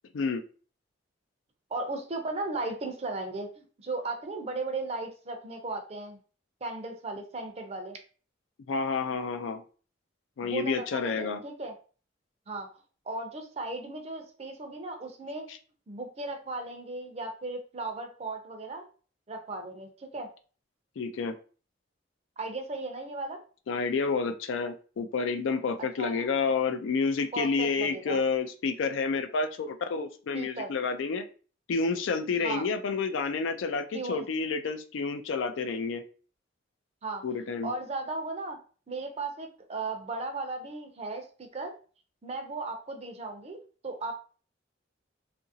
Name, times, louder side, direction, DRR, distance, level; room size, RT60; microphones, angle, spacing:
voice 1, 1.7-6.2 6.6-8.0 10.4-11.7 12.5-12.7 13.1-15.5 15.9-18.8 19.3-20.3 22.4-23.4 26.0-26.3 27.3-28.2 30.3-30.7 32.4-32.6 33.9-34.2 37.0-37.2 37.6-38.6 38.9-41.7 42.2-44.2, right 3 dB, 35° right, 4 dB, 0.5 m, -36 dB
voice 2, 8.7-9.6 10.4-11.4 21.0-21.3 23.7-31.2 31.7-36.0 37.2-37.7, left 4 dB, 80° left, 7 dB, 0.4 m, -29 dB
2.8 x 2.5 x 2.6 m, 0.39 s
head